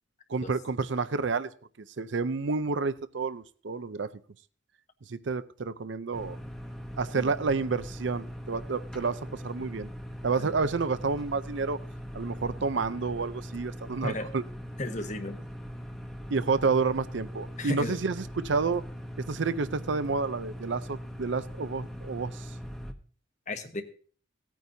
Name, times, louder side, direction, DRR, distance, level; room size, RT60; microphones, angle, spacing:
voice 1, 0.3-1.5 2.0-4.1 5.1-6.4 7.0-9.9 10.2-11.8 12.1-14.4 16.3-18.8 19.2-22.4, right 4 dB, 65° right, 13 dB, 0.6 m, -30 dB
sound 1, 6.1-22.9, equal, ahead, 0.9 m, -41 dB
voice 2, 14.0-14.3 14.8-15.4 17.6-18.0 23.5-23.8, left 2 dB, 40° left, 7 dB, 1.1 m, -34 dB
17.5 x 9.2 x 2.8 m, 0.43 s
head